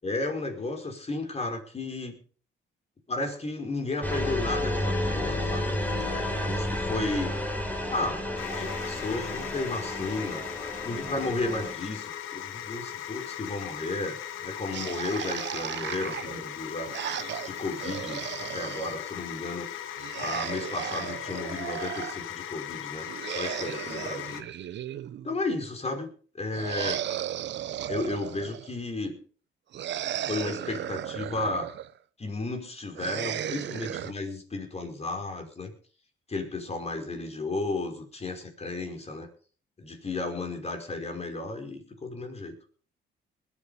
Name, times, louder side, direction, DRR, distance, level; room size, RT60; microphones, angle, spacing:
voice 1, 0.0-2.2 3.1-5.7 6.1-7.3 7.9-8.2 8.5-10.5 10.8-16.9 17.4-24.4 25.2-26.1 26.3-27.1 27.9-29.2 30.3-31.7 32.2-35.7 36.3-39.3 39.8-42.5, left 2 dB, 30° left, 4 dB, 5.2 m, -33 dB
sound 1, 4.0-11.7, left 1 dB, 10° left, 4.2 m, -31 dB
sound 2, 8.4-24.4, left 10 dB, 90° left, 1.4 m, -38 dB
sound 3, 14.7-19.0 20.0-22.2 23.0-25.4 26.5-28.8 29.7-31.9 33.0-34.1, right 11 dB, 65° right, 0.9 m, -35 dB
21.0 x 10.0 x 5.1 m, 0.43 s
cardioid pair, 90°, 20 cm